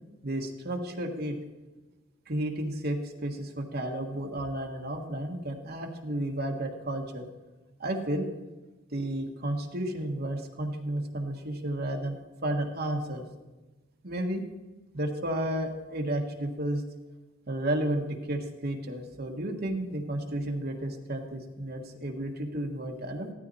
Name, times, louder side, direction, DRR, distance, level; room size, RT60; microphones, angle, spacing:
voice 1, 0.2-1.4 2.3-7.3 7.8-8.2 8.9-13.3 14.0-14.4 14.9-16.8 17.5-23.3, right 1 dB, 45° right, 2 dB, 1.5 m, -32 dB
15.0 x 13.0 x 4.2 m, 1.2 s
head